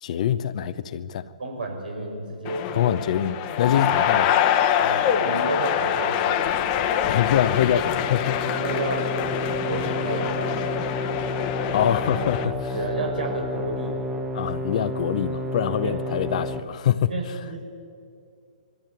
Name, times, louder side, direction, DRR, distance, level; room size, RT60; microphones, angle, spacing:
voice 1, 0.0-1.3 2.7-4.3 7.1-8.4 11.7-12.8 14.3-17.1, left 10 dB, 50° left, 0.8 m, -24 dB
voice 2, 1.4-2.8 3.7-4.2 4.8-6.5 8.4-9.1 9.6-10.9 12.7-14.0 15.8-15.9 17.0-17.6, right 2 dB, 80° right, 5.6 m, -31 dB
sound 1, 2.4-12.4, left 9 dB, 30° left, 1.2 m, -25 dB
sound 2, 7.2-16.6, left 1 dB, 10° right, 1.4 m, -31 dB
22.5 x 13.5 x 9.0 m
hypercardioid pair, 140°, 5 cm